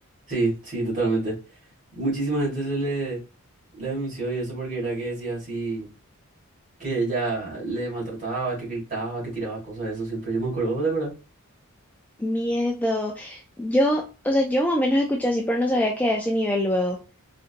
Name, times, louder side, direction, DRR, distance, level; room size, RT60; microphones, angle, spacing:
voice 1, 0.3-1.3 1.9-3.2 3.7-5.9 6.8-11.1, right 3 dB, 35° right, -5 dB, 1.8 m, -27 dB
voice 2, 12.2-17.0, left 1 dB, 5° left, 0 dB, 0.3 m, -23 dB
3.8 x 2.6 x 2.5 m, 0.31 s
head